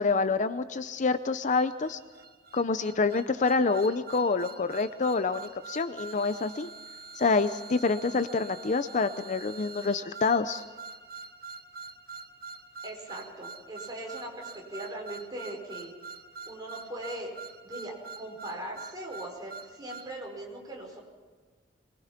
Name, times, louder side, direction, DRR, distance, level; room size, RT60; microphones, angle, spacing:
voice 1, 0.0-2.0 2.5-6.7 7.2-10.6, left 4 dB, 40° left, 11 dB, 0.6 m, -27 dB
sound 1, 1.5-20.1, right 4 dB, 55° right, 1.4 m, -45 dB
voice 2, 12.8-15.9 16.5-17.3 17.6-21.0, right 1 dB, 20° right, -1 dB, 5.0 m, -40 dB
23.0 x 21.0 x 5.9 m, 1.5 s
head